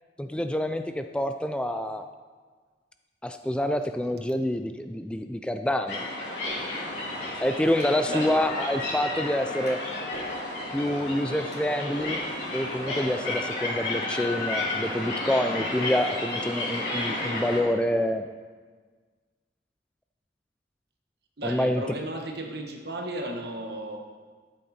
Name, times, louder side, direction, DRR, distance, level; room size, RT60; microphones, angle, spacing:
voice 1, 0.2-2.1 3.2-6.1 7.4-9.8 10.7-12.2 12.5-18.2 21.4-21.8, left 1 dB, 5° left, 7 dB, 0.3 m, -27 dB
sound 1, 5.9-17.6, left 2 dB, 90° left, 3.7 m, -32 dB
sound 2, 6.4-14.6, equal, 40° right, 1.2 m, -45 dB
voice 2, 21.4-24.0, right 1 dB, 60° right, 2 dB, 1.4 m, -34 dB
12.5 x 8.2 x 4.3 m, 1.5 s
head